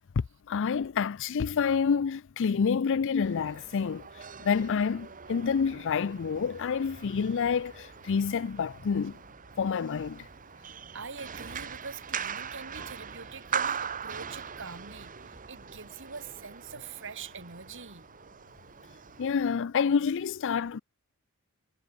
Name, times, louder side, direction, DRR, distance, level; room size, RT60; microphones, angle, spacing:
voice 1, 0.5-4.0 4.4-9.1 9.6-10.2 19.2-20.8, left 6 dB, 60° left, 0.4 m, -28 dB
sound 1, 3.2-19.3, right 7 dB, 40° right, 1.3 m, -41 dB
voice 2, 10.6-18.1, right 5 dB, 60° right, 3.6 m, -44 dB
head